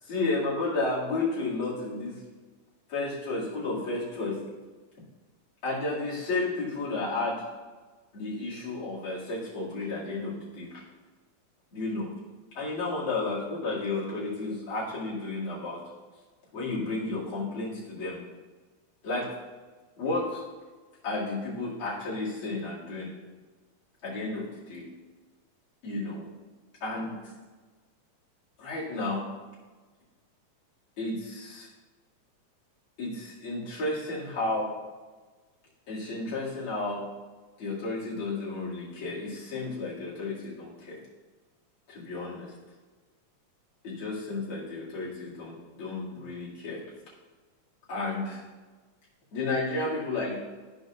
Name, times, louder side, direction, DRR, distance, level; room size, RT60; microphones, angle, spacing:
voice 1, 0.0-2.2 2.9-4.4 5.6-7.4 8.1-10.8 11.7-12.1 12.5-15.8 16.5-18.2 19.0-19.3 20.0-20.4 21.0-23.1 24.0-24.9 25.8-26.2 26.8-27.3 28.6-29.2 31.0-31.7 33.0-34.7 35.9-37.0 37.6-41.0 41.9-42.5 43.8-46.8 47.9-48.4 49.3-50.4, left 2 dB, 45° left, -8 dB, 3.0 m, -32 dB
14.0 x 5.2 x 2.5 m, 1.4 s
omnidirectional pair, 3.5 m